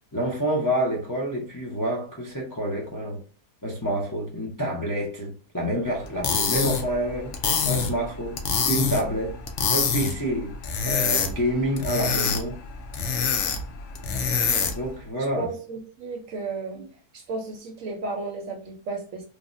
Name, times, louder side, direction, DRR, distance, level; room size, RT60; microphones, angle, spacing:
voice 1, 0.1-3.2 3.6-7.4 7.6-8.4 8.7-9.4 9.7-10.5 10.8-12.6 13.4-13.6 14.8-15.5 16.7-16.8, right 1 dB, 30° left, 0.3 m, -28 dB
sound 1, 6.0-14.9, left 6 dB, 70° left, 0.7 m, -26 dB
voice 2, 15.4-16.8 17.1-19.3, right 3 dB, 65° right, 0.9 m, -33 dB
3.3 x 2.1 x 2.5 m
omnidirectional pair, 1.7 m